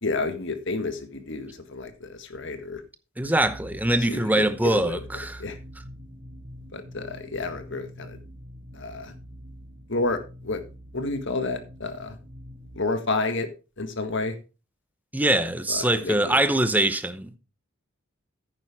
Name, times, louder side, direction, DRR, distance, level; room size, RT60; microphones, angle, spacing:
voice 1, 0.0-2.8 4.1-5.0 5.4-5.6 6.7-8.2 8.7-9.1 9.9-10.6 10.9-12.2 12.8-13.5 13.8-14.4 15.7-16.4, left 3 dB, 60° left, 1.7 m, -30 dB
voice 2, 3.2-5.4 15.1-17.3, right 1 dB, 10° right, 0.8 m, -23 dB
sound 1, 3.2-12.8, equal, 30° right, 1.5 m, -45 dB
10.5 x 9.2 x 3.6 m
head